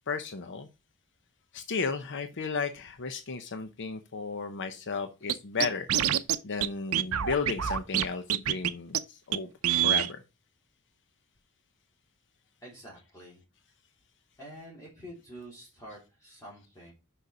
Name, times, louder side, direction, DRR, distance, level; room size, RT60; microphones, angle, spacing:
voice 1, 0.1-0.7 1.5-5.9 6.4-9.5 9.8-10.2, left 4 dB, 55° left, 0.7 m, -34 dB
Scratching (performance technique), 5.3-5.4 5.6-6.4 6.6-6.7 6.9-8.0 8.3-8.7 8.9-9.0 9.3-9.4 9.6-10.1, right 10 dB, 70° right, 0.6 m, -25 dB
voice 2, 12.6-13.4 14.4-16.9, equal, 15° left, 3.3 m, -47 dB
6.7 x 5.7 x 4.9 m
head